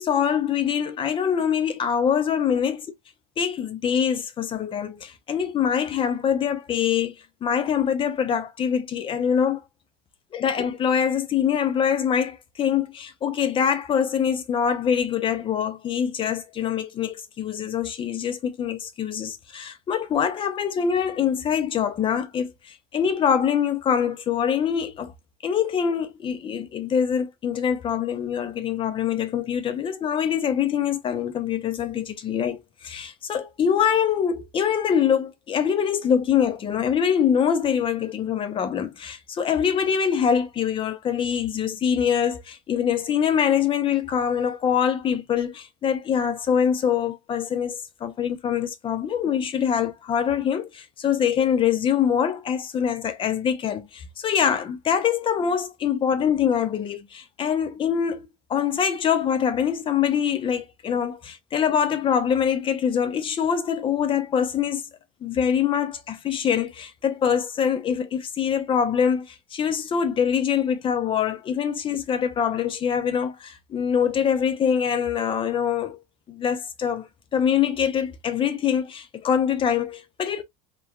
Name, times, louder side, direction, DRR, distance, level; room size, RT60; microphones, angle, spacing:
voice 1, 0.0-2.8 3.4-7.1 7.4-9.6 10.3-25.1 25.4-64.8 65.2-76.0 76.3-80.4, left 8 dB, 25° left, 0.4 m, -24 dB
2.9 x 2.2 x 2.3 m
cardioid pair, 135°, 20 cm